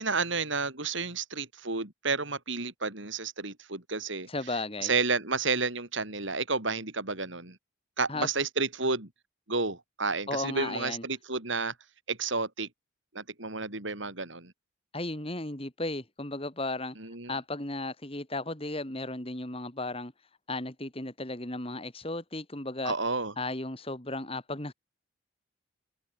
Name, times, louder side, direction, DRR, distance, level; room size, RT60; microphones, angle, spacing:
voice 1, 0.0-4.3 4.8-7.6 8.0-9.1 9.5-11.7 12.1-12.7 13.1-14.5 17.0-17.3 22.8-23.3, right 4 dB, 65° right, 4.4 m, -31 dB
voice 2, 4.3-4.9 8.1-8.3 10.3-11.0 14.9-17.0 17.3-22.9 23.4-24.7, left 2 dB, 25° left, 2.5 m, -35 dB
open air
head